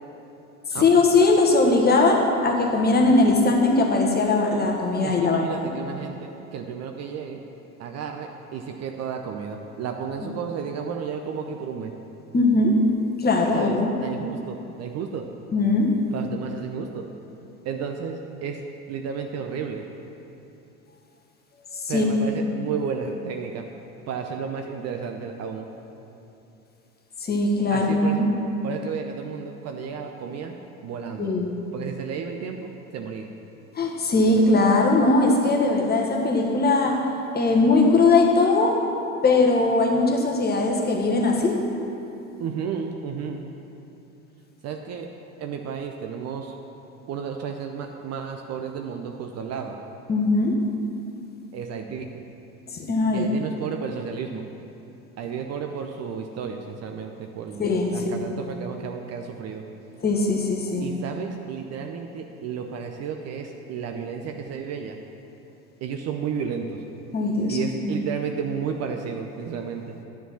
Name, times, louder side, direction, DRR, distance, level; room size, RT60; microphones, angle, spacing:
voice 1, 0.7-5.7 10.2-10.3 12.3-12.8 13.2-13.9 15.5-16.0 21.7-22.1 22.4-22.6 27.2-28.3 31.2-31.5 33.7-37.1 37.3-38.9 39.2-41.6 50.1-50.5 52.7-53.3 57.6-58.3 60.0-60.9 67.1-68.0, left 3 dB, 20° left, 1 dB, 1.3 m, -20 dB
voice 2, 5.0-7.4 7.8-11.9 13.5-15.3 16.1-17.1 17.6-18.6 18.9-19.8 21.9-23.6 24.1-25.7 27.7-28.2 28.6-30.6 30.8-31.3 31.7-33.4 42.4-43.4 44.6-45.1 45.4-46.5 47.1-49.7 51.5-52.1 53.1-54.4 55.2-59.6 60.8-65.0 65.8-66.8 67.5-70.0, right 6 dB, 35° right, 4 dB, 0.6 m, -32 dB
10.0 x 4.7 x 7.1 m, 2.8 s
figure-of-eight pair, 75°, 44 cm